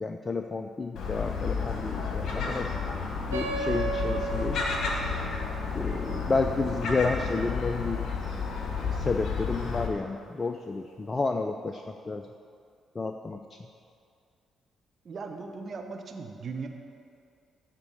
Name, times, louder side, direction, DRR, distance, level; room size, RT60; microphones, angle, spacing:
voice 1, 0.0-2.7 3.3-4.6 5.7-8.0 8.9-12.2 13.0-13.6, left 3 dB, 30° left, 6 dB, 0.5 m, -31 dB
Gull seagull, 1.0-9.9, left 5 dB, 55° left, 1.5 m, -31 dB
sound 1, 3.3-8.3, right 4 dB, 85° right, 0.8 m, -36 dB
voice 2, 15.0-16.7, right 4 dB, 45° right, 4 dB, 1.0 m, -38 dB
13.5 x 4.5 x 8.3 m, 2.3 s
figure-of-eight pair, 40°, 0 cm